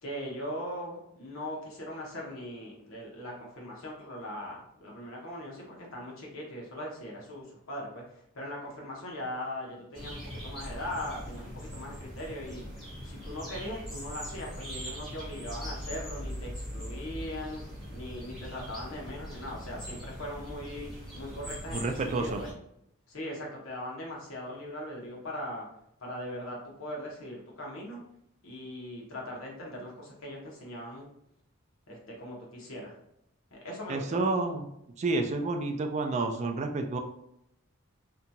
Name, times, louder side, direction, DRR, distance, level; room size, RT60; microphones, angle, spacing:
voice 1, 0.0-8.0 8.3-12.6 13.0-17.6 17.9-22.5 23.1-25.7 26.0-28.0 28.4-31.1 31.9-32.9 33.5-34.2, left 1 dB, 70° left, -2 dB, 0.9 m, -40 dB
sound 1, 9.9-22.5, equal, ahead, 1.1 m, -41 dB
voice 2, 21.7-22.4 33.9-34.7 35.0-37.0, right 3 dB, 35° right, 5 dB, 0.3 m, -29 dB
2.8 x 2.3 x 2.6 m, 0.79 s
head